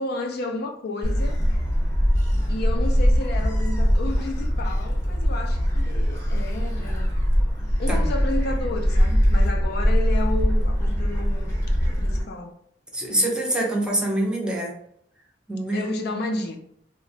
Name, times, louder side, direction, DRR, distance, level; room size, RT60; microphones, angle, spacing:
voice 1, 0.0-1.4 2.5-7.2 7.8-11.5 11.9-12.6 15.7-16.6, left 2 dB, 60° left, 0.4 m, -32 dB
Gull seagull, 1.0-12.2, equal, 20° left, 0.8 m, -22 dB
voice 2, 12.9-14.7 15.5-15.9, right 1 dB, 5° right, 0.5 m, -25 dB
2.8 x 2.1 x 2.6 m
head